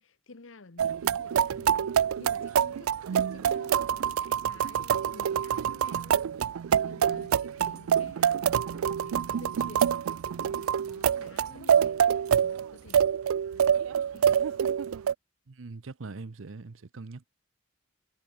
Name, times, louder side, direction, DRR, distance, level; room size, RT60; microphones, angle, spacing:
voice 1, 0.0-6.3 6.8-10.0 10.4-13.1 13.5-13.8 14.1-14.8, left 3 dB, 65° left, 1.1 m, -52 dB
sound 1, 0.8-15.1, right 8 dB, 90° right, 0.4 m, -26 dB
voice 2, 15.5-17.3, right 3 dB, 70° right, 0.7 m, -42 dB
head